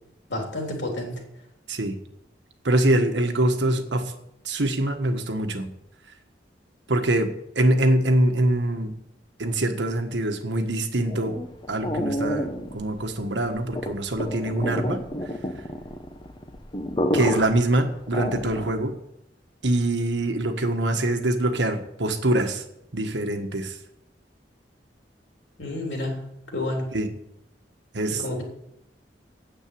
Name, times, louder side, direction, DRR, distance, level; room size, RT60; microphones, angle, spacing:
voice 1, 0.3-1.2 25.6-26.9 28.2-28.4, left 1 dB, 80° left, 1 dB, 3.6 m, -30 dB
voice 2, 2.6-4.0 4.4-5.7 6.9-7.3 7.5-8.9 9.4-11.4 11.7-15.0 17.1-18.9 19.6-22.6 22.9-23.7 26.9-27.1 27.9-28.2, right 1 dB, 90° right, 6 dB, 1.5 m, -24 dB
sound 1, 11.1-18.9, left 1 dB, 25° left, 1.0 m, -30 dB
9.1 x 8.3 x 8.6 m, 0.80 s
head